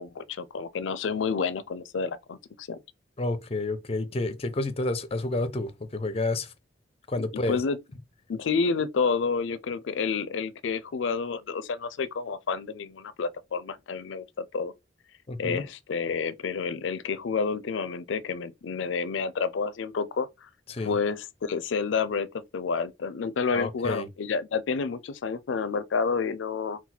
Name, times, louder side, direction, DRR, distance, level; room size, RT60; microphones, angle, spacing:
voice 1, 0.0-2.8 7.2-7.8 8.3-14.7 15.4-20.5 20.8-26.8, left 5 dB, 80° left, 0.4 m, -29 dB
voice 2, 3.2-6.5 7.1-7.6 15.3-15.6 20.7-20.9 23.5-24.1, left 2 dB, 35° left, 0.6 m, -29 dB
3.9 x 2.3 x 4.2 m
head